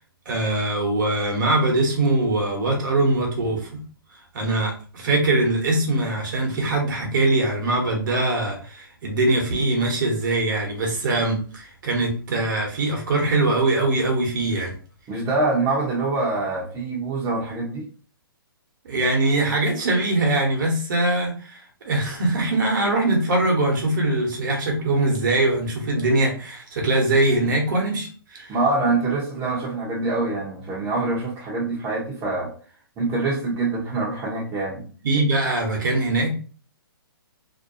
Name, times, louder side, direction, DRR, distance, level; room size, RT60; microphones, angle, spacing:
voice 1, 0.2-3.8 4.3-14.7 18.8-28.5 35.0-36.3, right 2 dB, 55° right, 1 dB, 1.0 m, -22 dB
voice 2, 15.1-17.9 28.5-32.5 33.0-34.9, right 3 dB, 20° right, -4 dB, 0.8 m, -25 dB
2.6 x 2.2 x 2.6 m, 0.40 s
hypercardioid pair, 140°, 12 cm